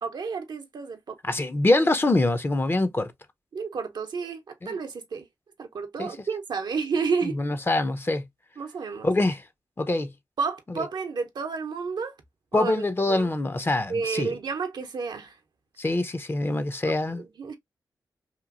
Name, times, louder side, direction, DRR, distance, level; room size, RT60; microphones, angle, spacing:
voice 1, 0.0-1.2 3.5-5.3 5.6-7.4 8.6-9.1 10.4-12.1 12.5-13.3 13.9-15.3 16.8-17.6, right 5 dB, 65° right, 0.6 m, -31 dB
voice 2, 1.2-3.1 4.6-4.7 6.0-6.1 7.2-8.3 9.0-9.4 9.8-10.1 12.5-14.3 15.8-17.2, left 2 dB, 30° left, 0.6 m, -24 dB
2.9 x 2.5 x 2.4 m
cardioid pair, 45°, 8 cm